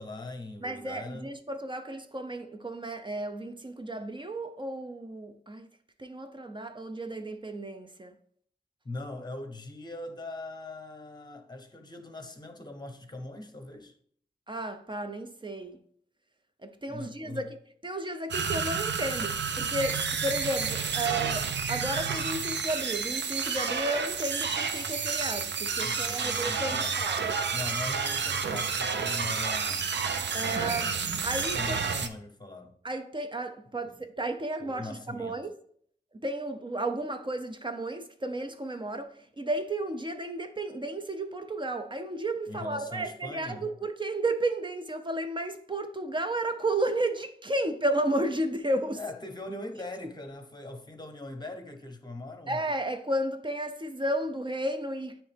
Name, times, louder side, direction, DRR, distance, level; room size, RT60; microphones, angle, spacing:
voice 1, 0.0-1.3 8.8-14.0 16.9-17.4 25.8-27.0 27.5-32.8 33.8-33.9 34.6-35.4 42.5-43.7 49.0-52.6, left 2 dB, 25° left, 0.8 m, -41 dB
voice 2, 0.6-5.7 6.0-8.1 14.5-15.8 16.6-17.6 17.8-27.3 30.3-31.0 31.2-31.8 32.8-35.5 36.1-49.0 50.0-50.1 52.5-55.2, right 1 dB, 25° right, 0.5 m, -33 dB
sound 1, 18.3-32.1, right 5 dB, 85° right, 0.5 m, -30 dB
9.1 x 3.1 x 3.3 m
wide cardioid pair, 75°, 18 cm